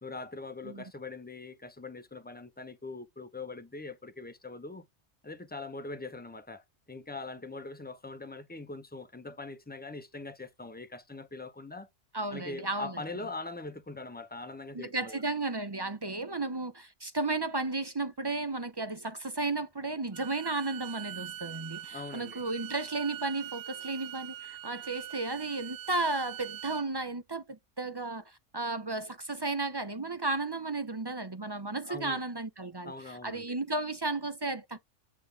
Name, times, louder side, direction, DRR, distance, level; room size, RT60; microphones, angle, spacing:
voice 1, 0.0-4.8 5.2-11.9 12.3-15.2 21.9-22.4 31.8-32.2 32.8-33.6, left 3 dB, 10° left, 0.7 m, -42 dB
voice 2, 12.1-12.9 14.7-28.2 28.5-32.9 33.2-34.9, right 3 dB, 30° right, 0.5 m, -34 dB
Bowed string instrument, 20.1-26.9, right 12 dB, 85° right, 0.9 m, -43 dB
8.4 x 4.0 x 3.4 m
omnidirectional pair, 1.3 m